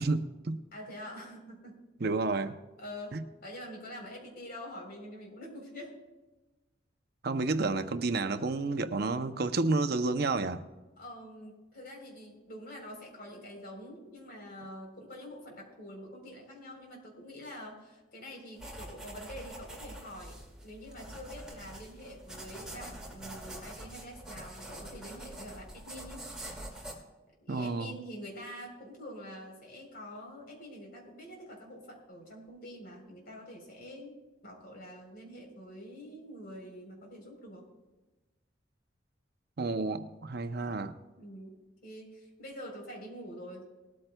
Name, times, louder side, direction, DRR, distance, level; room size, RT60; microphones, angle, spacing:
voice 1, 0.0-0.6 2.0-2.6 3.1-3.2 7.2-10.6 27.5-28.0 39.6-40.9, right 3 dB, 55° right, 0.6 m, -30 dB
voice 2, 0.7-1.8 2.8-3.2 3.4-6.0 11.0-26.2 27.4-34.2 34.4-37.6 41.2-41.6 41.8-43.6, equal, 50° left, 3.7 m, -46 dB
sound 1, 18.6-26.9, right 1 dB, 5° right, 2.1 m, -45 dB
19.5 x 13.0 x 2.2 m
head